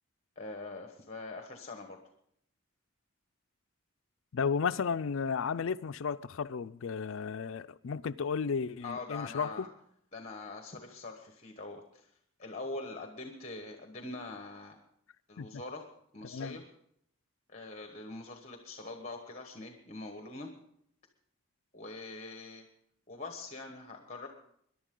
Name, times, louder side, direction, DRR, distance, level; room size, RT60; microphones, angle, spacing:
voice 1, 0.4-2.0 8.8-9.7 10.1-12.1 12.4-14.8 15.3-15.9 16.1-16.7 17.5-20.5 21.7-22.6 23.1-24.3, left 3 dB, 30° left, 1.2 m, -43 dB
voice 2, 4.3-9.7 15.4-15.6 16.2-16.6, left 6 dB, 65° left, 0.4 m, -33 dB
22.0 x 11.0 x 3.8 m
head